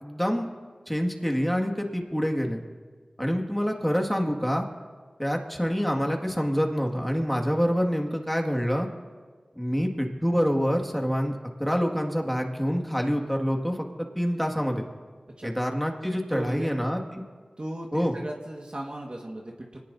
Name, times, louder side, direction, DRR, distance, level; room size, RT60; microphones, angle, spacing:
voice 1, 0.0-0.5 0.9-2.6 3.2-4.6 5.2-8.9 9.6-11.3 11.6-14.8 15.4-17.2 17.9-18.1, equal, 5° left, 1 dB, 2.2 m, -26 dB
voice 2, 16.1-16.7 17.6-19.8, right 1 dB, 50° right, -1 dB, 1.8 m, -36 dB
25.0 x 18.5 x 2.8 m, 1.5 s
wide cardioid pair, 45°, 2 cm